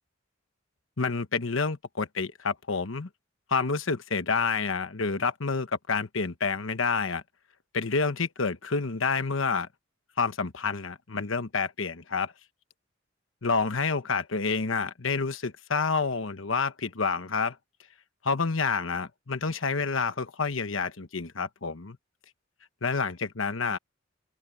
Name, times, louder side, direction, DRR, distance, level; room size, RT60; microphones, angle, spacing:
voice 1, 1.0-3.1 3.5-7.2 7.7-9.7 10.2-12.3 13.4-17.6 18.2-22.0 22.8-23.8, left 4 dB, 80° left, 1.2 m, -28 dB
open air
head